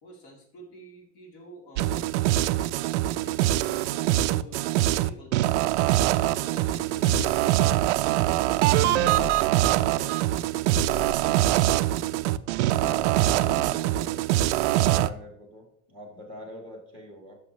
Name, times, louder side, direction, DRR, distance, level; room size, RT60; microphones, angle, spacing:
voice 1, 0.0-2.1 3.1-5.5 6.0-7.5 8.9-9.4 9.7-10.2, left 1 dB, 45° left, -1 dB, 3.1 m, -48 dB
sound 1, 1.8-15.1, right 14 dB, 65° right, 0.5 m, -23 dB
sound 2, 7.1-7.3 8.9-9.4 10.8-11.9, left 9 dB, 85° left, 0.6 m, -38 dB
voice 2, 12.5-14.1 14.6-17.3, left 1 dB, 10° left, 1 dB, 1.5 m, -42 dB
14.0 x 6.5 x 3.1 m, 0.68 s
supercardioid pair, 175°, 37 cm